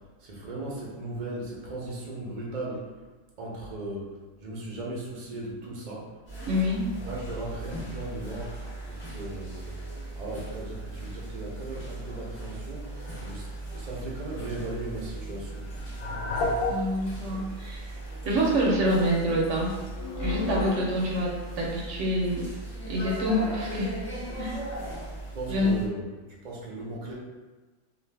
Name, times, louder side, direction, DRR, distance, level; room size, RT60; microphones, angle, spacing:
voice 1, 0.0-2.9 3.4-6.2 7.0-9.9 10.2-15.7 25.3-27.1, right 2 dB, 45° right, -4 dB, 0.5 m, -37 dB
sound 1, 6.3-25.9, right 2 dB, 35° left, 1.1 m, -38 dB
voice 2, 6.5-6.9 16.7-17.9 18.2-19.7 20.2-22.5 22.9-23.9 24.4-24.6 25.5-25.8, equal, 70° right, -3 dB, 0.9 m, -26 dB
sound 2, 14.4-14.7 15.7-17.1 17.5-17.6 18.1-18.3 19.1-20.8, left 2 dB, 70° left, 0.5 m, -32 dB
2.5 x 2.4 x 3.2 m, 1.2 s
omnidirectional pair, 1.4 m